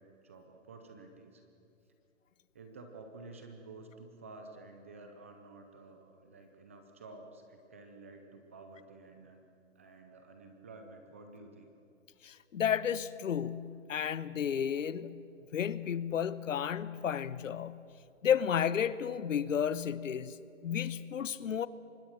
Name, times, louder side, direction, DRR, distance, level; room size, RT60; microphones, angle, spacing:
voice 1, 0.0-1.4 2.5-9.5 9.8-11.7, right 3 dB, 10° right, 0.5 m, -51 dB
voice 2, 12.2-15.2 15.5-17.8 18.2-20.4 20.6-21.7, left 8 dB, 80° left, 1.0 m, -32 dB
24.5 x 20.0 x 6.4 m
hypercardioid pair, 165°, 38 cm